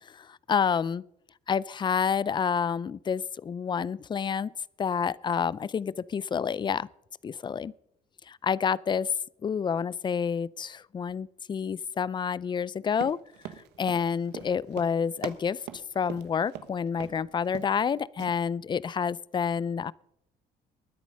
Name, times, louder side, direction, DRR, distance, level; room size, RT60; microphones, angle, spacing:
voice 1, 0.2-1.0 1.5-4.5 4.8-6.9 7.2-7.7 8.3-9.1 9.4-13.2 13.8-15.6 16.0-19.9, left 7 dB, 25° left, 0.4 m, -28 dB
Run, 12.9-16.7 17.0-17.2 17.5-17.9 18.2-18.3, right 11 dB, 85° right, 1.3 m, -41 dB
21.0 x 9.7 x 5.4 m
cardioid pair, 110°, 17 cm